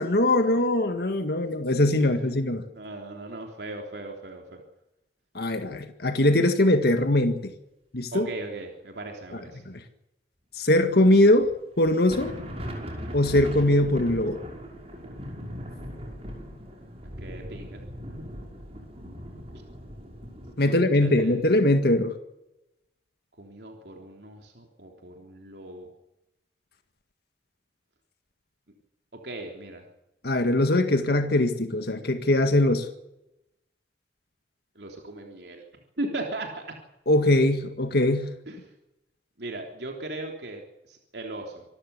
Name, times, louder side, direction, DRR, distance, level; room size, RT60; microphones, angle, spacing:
voice 1, 0.0-2.6 5.4-7.5 7.9-8.3 9.7-9.8 10.6-11.5 11.8-12.3 13.1-14.4 20.6-22.1 30.2-32.9 37.1-38.3, left 1 dB, 60° left, 7 dB, 1.8 m, -21 dB
voice 2, 2.0-2.5 2.7-4.6 8.1-9.6 17.2-17.8 18.1-18.3 20.6-21.4 23.4-25.9 29.2-29.8 34.8-35.6 36.0-36.6 38.5-38.7 39.4-41.6, right 2 dB, 70° right, 1 dB, 3.5 m, -38 dB
sound 1, 11.3-11.5 11.8-20.5, equal, 35° right, 5.6 m, -39 dB
26.0 x 14.0 x 8.3 m, 0.89 s
head